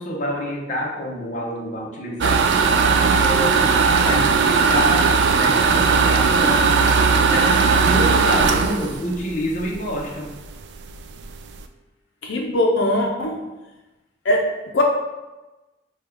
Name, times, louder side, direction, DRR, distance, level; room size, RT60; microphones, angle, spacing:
voice 1, 0.0-6.8 7.1-10.3, equal, 45° left, -2 dB, 0.8 m, -27 dB
sound 1, 2.2-10.0 10.4-10.5 10.9-11.0 11.2-11.6, right 5 dB, 70° right, 0.3 m, -18 dB
voice 2, 12.2-13.5 14.2-14.8, left 1 dB, 85° left, 0 dB, 0.5 m, -21 dB
5.2 x 2.3 x 3.4 m, 1.1 s
head